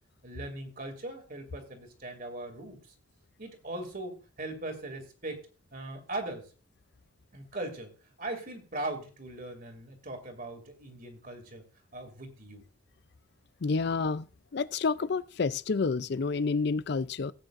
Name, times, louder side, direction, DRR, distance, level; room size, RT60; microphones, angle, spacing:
voice 1, 0.2-2.8 3.4-6.5 7.3-11.6 11.9-12.6, right 2 dB, 45° right, 2.5 m, -40 dB
voice 2, 13.6-14.3 14.5-17.3, left 4 dB, 55° left, 0.4 m, -29 dB
17.0 x 9.0 x 2.5 m
head